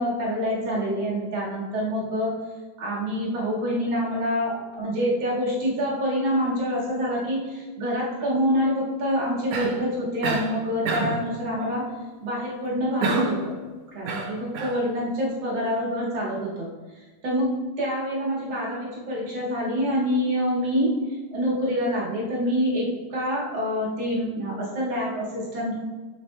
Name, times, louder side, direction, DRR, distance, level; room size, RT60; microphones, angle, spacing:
voice 1, 0.0-2.3 2.8-11.9 12.2-13.6 13.9-16.7 17.2-20.9 21.3-25.8, equal, 55° right, -6 dB, 2.5 m, -26 dB
Cough, 9.5-9.8 10.2-10.5 10.9-11.2 13.0-13.4 14.0-14.8, right 3 dB, 90° right, 1.4 m, -27 dB
8.0 x 6.3 x 2.2 m, 1.3 s
omnidirectional pair, 4.0 m